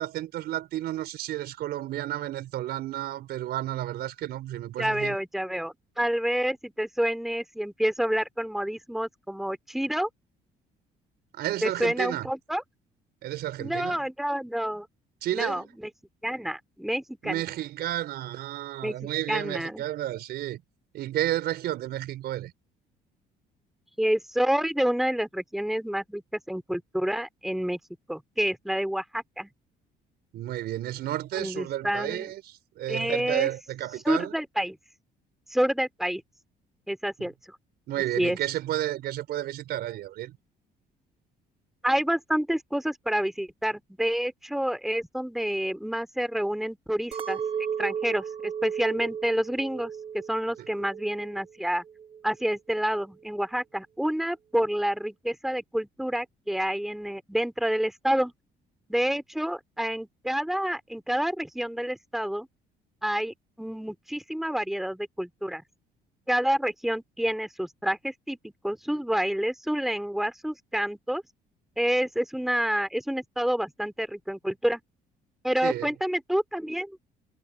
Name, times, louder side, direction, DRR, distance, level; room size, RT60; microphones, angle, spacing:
voice 1, 0.0-5.2 11.3-12.3 13.2-14.0 15.2-15.7 17.2-20.6 20.9-22.5 30.3-34.4 37.2-37.3 37.9-40.4 75.6-75.9, right 13 dB, 70° right, 5.0 m, -32 dB
voice 2, 4.8-10.1 11.6-12.6 13.6-14.9 15.3-15.6 16.2-17.4 18.8-19.8 24.0-27.8 28.1-29.5 31.4-32.3 32.9-33.5 34.0-34.8 35.5-36.2 36.9-37.3 38.2-38.4 41.8-47.4 47.8-51.8 52.2-58.3 58.9-62.5 63.0-65.6 66.3-71.2 71.8-74.8 75.4-77.0, equal, ahead, 2.8 m, -28 dB
Chink clink, 47.1-51.5 51.9-52.5, right 7 dB, 30° right, 1.2 m, -35 dB
cardioid pair, 110°, 17 cm